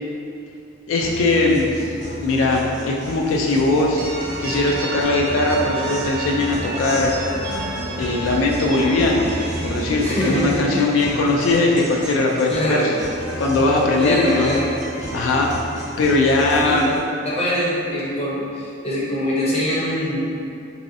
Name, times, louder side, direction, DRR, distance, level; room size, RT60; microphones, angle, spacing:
voice 1, 0.9-1.9 2.2-4.0 4.4-7.1 8.0-9.3 9.6-13.0 13.4-14.5 15.1-15.5 16.0-16.9, left 2 dB, 80° left, -1 dB, 0.3 m, -20 dB
Guitar, 1.0-17.0, equal, 60° left, 0.8 m, -33 dB
sound 1, 4.0-12.7 13.0-17.1, right 2 dB, 45° right, 0.4 m, -32 dB
voice 2, 10.0-11.0 12.5-12.9 14.0-14.7 16.6-20.2, equal, 30° left, -7 dB, 0.6 m, -24 dB
2.9 x 2.6 x 2.6 m, 2.6 s
head